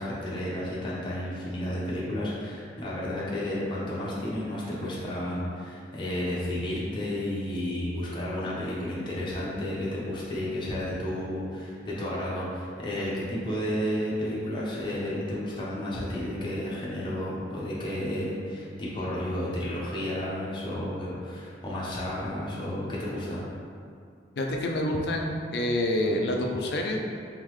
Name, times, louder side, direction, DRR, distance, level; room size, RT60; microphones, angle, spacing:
voice 1, 0.0-23.4, left 1 dB, 25° left, -7 dB, 0.8 m, -32 dB
voice 2, 24.4-27.0, left 1 dB, 60° left, 1 dB, 0.5 m, -27 dB
3.7 x 3.6 x 3.1 m, 2.3 s
head